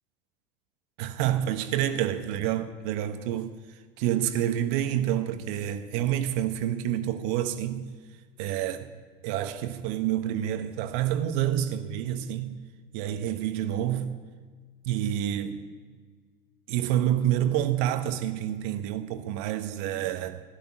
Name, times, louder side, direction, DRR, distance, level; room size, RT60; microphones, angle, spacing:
voice 1, 1.0-7.9 8.4-8.9 9.2-12.6 12.9-14.1 14.8-15.7 16.7-20.4, right 11 dB, 55° right, 1.4 m, -28 dB
16.5 x 12.5 x 6.0 m
figure-of-eight pair, 80°, 30 cm